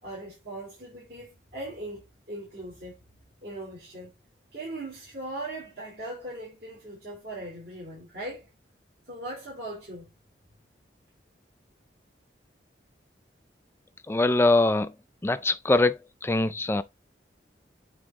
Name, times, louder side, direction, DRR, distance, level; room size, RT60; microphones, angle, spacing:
voice 1, 0.0-3.0 3.4-4.1 4.5-8.5 9.1-10.1, right 1 dB, 55° right, 3.1 m, -39 dB
voice 2, 14.1-14.9 15.2-16.8, left 2 dB, 15° left, 0.3 m, -23 dB
7.9 x 3.5 x 3.7 m
head